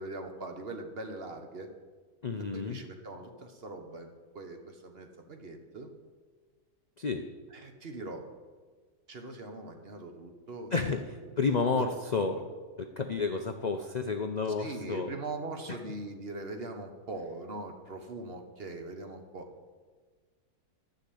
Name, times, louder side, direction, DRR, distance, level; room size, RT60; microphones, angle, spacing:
voice 1, 0.0-1.7 2.5-5.9 7.5-8.3 9.1-10.7 11.4-11.9 12.3-12.4 14.6-19.5, right 2 dB, 40° right, 5 dB, 1.2 m, -41 dB
voice 2, 2.2-2.8 7.0-7.2 10.7-12.4 12.8-15.1, left 4 dB, 70° left, 6 dB, 0.4 m, -31 dB
11.5 x 6.5 x 8.4 m, 1.5 s
omnidirectional pair, 1.7 m